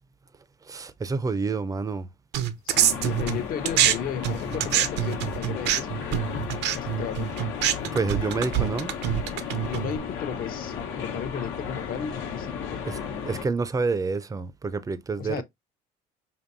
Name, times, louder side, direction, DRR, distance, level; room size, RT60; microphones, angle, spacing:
voice 1, 0.6-2.1 7.9-8.9 12.9-13.0 13.2-15.4, right 4 dB, 20° right, 0.5 m, -28 dB
sound 1, 2.3-3.9 4.2-10.0, right 10 dB, 70° right, 0.7 m, -25 dB
sound 2, 2.7-13.5, left 6 dB, 85° left, 1.1 m, -34 dB
voice 2, 2.7-6.3 6.7-7.3 9.7-12.8 15.2-15.4, left 8 dB, 55° left, 0.7 m, -34 dB
5.2 x 2.6 x 2.5 m
cardioid pair, 95°, 18 cm